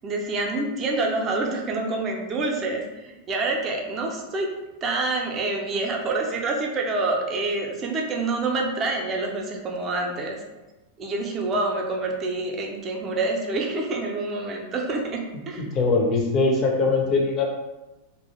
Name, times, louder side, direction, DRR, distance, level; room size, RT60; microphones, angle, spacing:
voice 1, 0.0-4.5 4.8-10.4 11.0-15.7, right 2 dB, 30° right, 1 dB, 0.4 m, -27 dB
voice 2, 15.6-17.4, left 3 dB, 30° left, 1 dB, 0.4 m, -21 dB
2.3 x 2.0 x 2.9 m, 1.1 s
figure-of-eight pair, 90°, 0 cm